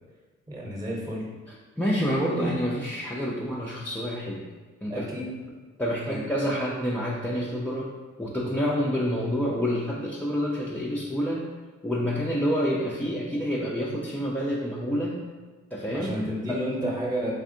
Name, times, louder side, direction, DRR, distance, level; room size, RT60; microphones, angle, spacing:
voice 1, 0.5-1.3 4.9-5.3 6.1-6.2 15.9-17.3, right 1 dB, 10° right, -4 dB, 0.8 m, -31 dB
voice 2, 1.5-4.5 4.8-5.2 5.8-11.5 11.8-15.2 15.7-16.6, equal, 5° left, -5 dB, 0.3 m, -28 dB
3.4 x 3.4 x 2.6 m, 1.4 s
cardioid pair, 90°, 30 cm